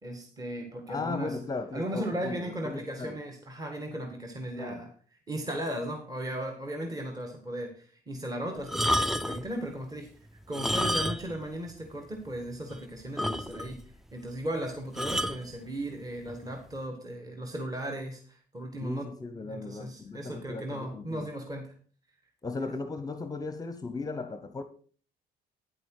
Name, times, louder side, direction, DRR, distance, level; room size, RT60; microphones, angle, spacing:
voice 1, 0.0-1.4 1.7-4.9 5.3-10.1 10.5-13.8 14.1-19.1 19.5-21.7, right 1 dB, 20° right, 1.7 m, -36 dB
voice 2, 0.9-3.2 4.6-4.9 18.8-21.3 22.4-24.6, left 3 dB, 20° left, 0.8 m, -37 dB
sound 1, 8.6-9.5 10.4-11.4 11.7-11.8 12.3-12.4 12.7-12.8 13.2-13.8 15.0-15.4 16.3-16.5, equal, ahead, 0.4 m, -29 dB
9.2 x 7.7 x 4.7 m
cardioid pair, 110°, 17 cm